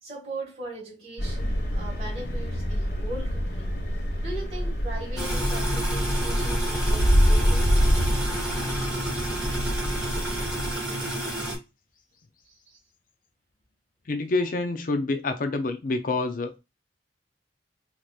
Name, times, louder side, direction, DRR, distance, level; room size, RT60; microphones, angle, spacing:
voice 1, 0.0-3.7 4.2-7.7 12.5-12.8, right 2 dB, 40° right, 2.2 m, -39 dB
sound 1, 1.2-10.7, equal, 75° left, 1.3 m, -26 dB
sound 2, 5.2-11.6, right 1 dB, 5° right, 2.0 m, -30 dB
voice 2, 14.1-16.6, left 3 dB, 50° left, 0.5 m, -27 dB
4.6 x 2.9 x 2.4 m
head